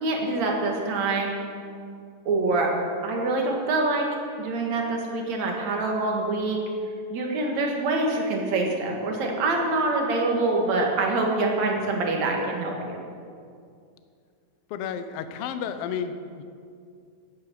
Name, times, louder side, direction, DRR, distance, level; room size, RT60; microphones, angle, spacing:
voice 1, 0.0-1.3 2.3-2.8 3.0-4.1 4.4-6.6 7.1-13.0, right 2 dB, 60° right, 1 dB, 2.9 m, -25 dB
voice 2, 14.7-16.4, left 7 dB, 85° left, 9 dB, 1.3 m, -32 dB
11.0 x 11.0 x 7.7 m, 2.3 s
omnidirectional pair, 3.8 m